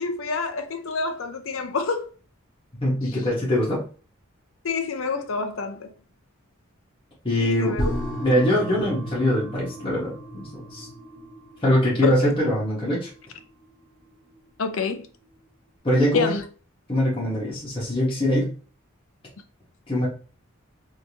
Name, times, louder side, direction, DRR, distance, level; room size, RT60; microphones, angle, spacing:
voice 1, 0.0-2.1 4.6-5.9 7.4-7.9 12.0-12.3 14.6-15.1 16.1-16.4, left 4 dB, 65° left, 0.6 m, -27 dB
voice 2, 2.8-3.8 7.2-7.8 8.2-10.9 11.6-13.1 15.8-16.3 16.9-18.5 19.9-20.1, left 1 dB, 25° left, 1.3 m, -23 dB
sound 1, 7.8-14.9 15.2-15.3, equal, 45° left, 1.3 m, -34 dB
3.4 x 2.8 x 2.9 m
head